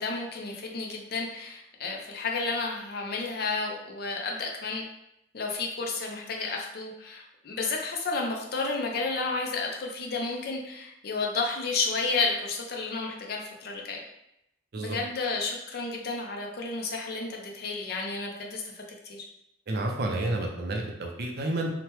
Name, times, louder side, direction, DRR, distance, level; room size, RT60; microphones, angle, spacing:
voice 1, 0.0-4.8 5.3-14.0 14.8-19.2, left 3 dB, 60° left, 1 dB, 0.5 m, -31 dB
voice 2, 19.7-21.7, right 2 dB, 60° right, 1 dB, 0.5 m, -30 dB
2.9 x 2.1 x 3.1 m, 0.82 s
head